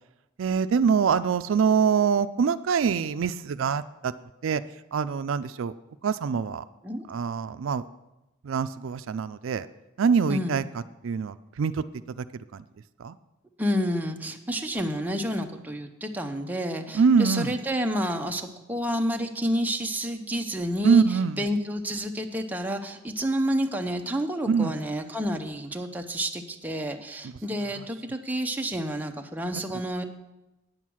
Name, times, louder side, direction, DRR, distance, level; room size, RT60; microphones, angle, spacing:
voice 1, 0.4-4.1 4.4-4.6 4.9-5.7 6.0-6.6 7.1-7.8 8.4-9.7 10.0-12.6 13.0-13.2 16.9-17.6 20.8-21.5 24.5-24.7 27.2-27.3 27.8-27.9, right 6 dB, 80° right, 13 dB, 0.4 m, -24 dB
voice 2, 13.6-21.0 21.4-30.0, equal, 10° right, 4 dB, 0.7 m, -29 dB
9.2 x 7.4 x 6.2 m, 0.97 s
head